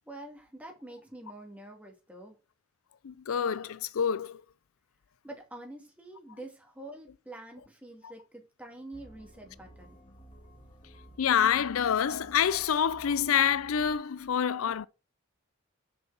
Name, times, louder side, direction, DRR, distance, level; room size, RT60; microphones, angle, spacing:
voice 1, 0.1-2.4 5.2-10.0, right 1 dB, 5° right, 2.2 m, -46 dB
voice 2, 3.0-4.4 11.2-14.9, left 8 dB, 90° left, 0.5 m, -27 dB
sound 1, 8.9-13.9, right 1 dB, 30° left, 2.1 m, -54 dB
6.8 x 5.3 x 6.1 m
head